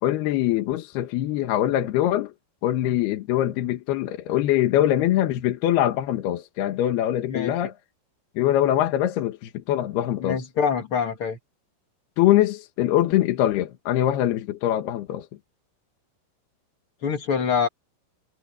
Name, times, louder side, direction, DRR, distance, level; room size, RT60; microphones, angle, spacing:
voice 1, 0.0-2.3 2.6-7.7 8.4-10.4 12.2-15.3, left 13 dB, 70° left, 2.8 m, -23 dB
voice 2, 10.2-11.4 17.0-17.7, left 6 dB, 50° left, 1.6 m, -25 dB
omnidirectional pair, 5.7 m